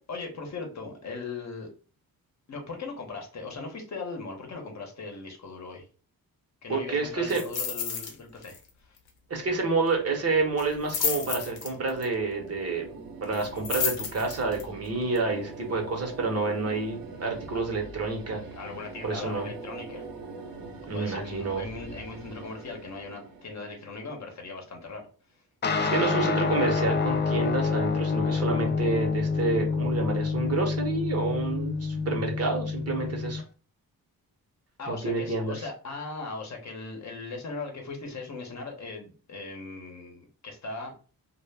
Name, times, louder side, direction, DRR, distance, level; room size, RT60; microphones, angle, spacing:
voice 1, 0.1-1.7 2.5-5.9 6.6-8.9 18.5-20.1 20.9-25.1 34.8-41.0, left 3 dB, 50° left, 2 dB, 0.8 m, -39 dB
voice 2, 6.7-7.4 9.3-18.4 19.0-19.5 20.9-21.7 25.8-33.4 34.9-35.6, right 3 dB, 40° right, 2 dB, 0.8 m, -29 dB
sound 1, 7.3-8.1 8.4-8.7 9.0-9.1 10.6-12.0 13.3-14.6 15.2-15.3, left 7 dB, 85° left, 0.7 m, -31 dB
sound 2, 9.7-24.6, right 3 dB, 70° right, 0.7 m, -44 dB
sound 3, 25.6-33.4, left 4 dB, 30° left, 0.4 m, -27 dB
2.1 x 2.1 x 3.3 m, 0.38 s
cardioid pair, 80°, 37 cm